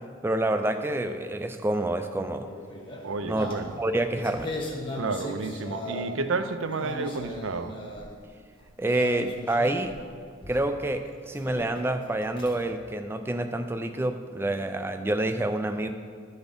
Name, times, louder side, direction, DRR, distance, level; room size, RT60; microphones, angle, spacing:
voice 1, 0.2-2.5 3.2-4.5 8.8-9.9 10.5-15.9, right 1 dB, 10° right, 7 dB, 0.3 m, -28 dB
sound 1, 2.4-6.3 6.6-8.2 8.9-10.0 10.4-10.8 11.3-12.7, left 1 dB, 25° left, 1.0 m, -38 dB
voice 2, 3.0-3.7 4.9-7.7, right 3 dB, 80° right, 9 dB, 0.6 m, -31 dB
12.0 x 4.1 x 5.2 m, 2.1 s
head